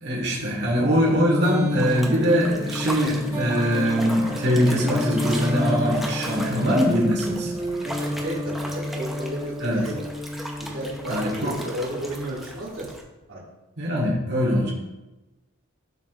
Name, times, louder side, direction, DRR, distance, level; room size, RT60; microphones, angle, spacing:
voice 1, 0.0-7.5 9.6-9.8 11.1-11.6 13.8-14.7, equal, 50° right, -2 dB, 1.7 m, -22 dB
sound 1, 1.1-11.7, left 1 dB, 20° right, 1.6 m, -30 dB
sound 2, 1.8-13.0, right 1 dB, ahead, 0.7 m, -38 dB
voice 2, 8.0-8.4 8.6-9.6 9.8-10.0 10.6-12.9 13.3-13.4, right 1 dB, 70° right, -11 dB, 2.3 m, -33 dB
11.0 x 7.0 x 2.5 m, 1.1 s
head